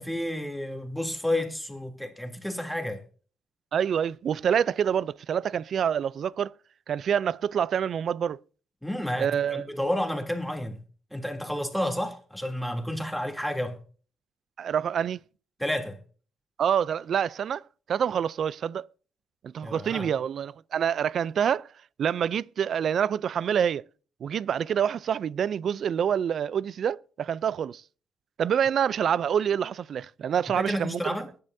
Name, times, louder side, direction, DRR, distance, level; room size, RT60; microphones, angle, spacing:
voice 1, 0.0-3.0 8.8-10.8 11.1-13.8 15.6-16.0 19.6-20.1 30.5-31.3, left 1 dB, ahead, 3.0 m, -31 dB
voice 2, 3.7-6.5 6.9-8.4 9.2-9.7 14.6-15.2 16.6-17.6 17.9-18.9 19.4-21.7 22.0-23.8 24.2-27.8 28.4-31.1, right 8 dB, 60° right, 0.5 m, -27 dB
22.5 x 11.0 x 2.7 m
cardioid pair, 85°, 0 cm